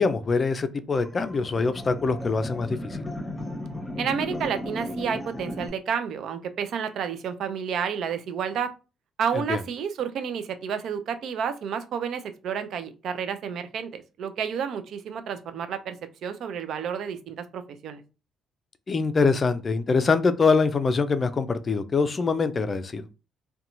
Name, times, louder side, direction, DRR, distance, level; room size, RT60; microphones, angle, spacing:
voice 1, 0.0-3.0 9.3-9.6 18.9-23.0, left 4 dB, 40° left, 0.4 m, -24 dB
sound 1, 0.9-5.7, left 1 dB, 20° left, 0.9 m, -35 dB
voice 2, 4.0-8.7 9.2-16.0 16.2-18.0, right 7 dB, 70° right, 0.4 m, -30 dB
2.7 x 2.2 x 2.5 m
hypercardioid pair, 50°, 0 cm